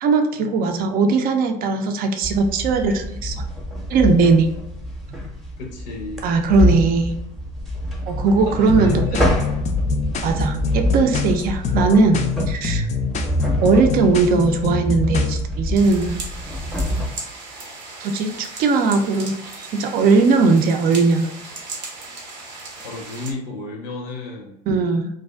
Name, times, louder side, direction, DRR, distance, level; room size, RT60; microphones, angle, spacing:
voice 1, 0.0-3.4 3.9-4.5 6.2-7.1 8.1-9.3 10.2-12.2 12.5-12.9 13.6-16.2 18.0-19.3 19.8-21.3 24.7-25.1, right 4 dB, 45° right, 6 dB, 0.5 m, -18 dB
sound 1, 2.2-17.1, equal, ahead, 0.7 m, -26 dB
voice 2, 5.6-6.2 8.3-9.6 22.8-24.6, left 3 dB, 75° left, 0 dB, 0.6 m, -33 dB
sound 2, 8.7-15.4, left 6 dB, 35° left, 0.4 m, -26 dB
sound 3, 15.8-23.3, right 3 dB, 85° right, 0.7 m, -36 dB
2.4 x 2.2 x 2.2 m, 0.85 s
hypercardioid pair, 80°, 21 cm